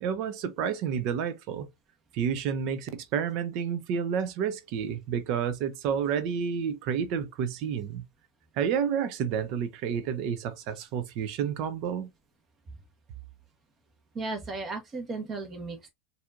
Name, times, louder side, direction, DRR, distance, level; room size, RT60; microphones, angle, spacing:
voice 1, 0.0-1.7 2.1-8.0 8.6-12.1, right 7 dB, 55° right, 0.5 m, -30 dB
voice 2, 14.1-15.9, right 3 dB, 30° right, 1.3 m, -35 dB
4.2 x 2.7 x 2.4 m
hypercardioid pair, 95°, 0 cm